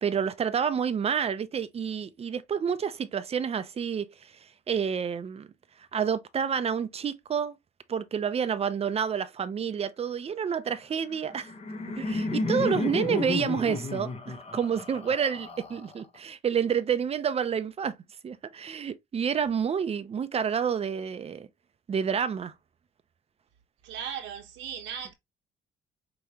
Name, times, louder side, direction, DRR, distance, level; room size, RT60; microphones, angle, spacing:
voice 1, 0.0-4.3 4.7-5.5 5.9-7.6 7.9-11.5 12.0-17.9 18.2-21.5 21.9-22.5, right 7 dB, 35° right, 0.6 m, -29 dB
Laughter, 11.1-16.2, left 3 dB, 35° left, 1.1 m, -32 dB
voice 2, 23.8-25.1, right 8 dB, 90° right, 1.3 m, -37 dB
5.0 x 3.0 x 2.9 m
cardioid pair, 105°, 18 cm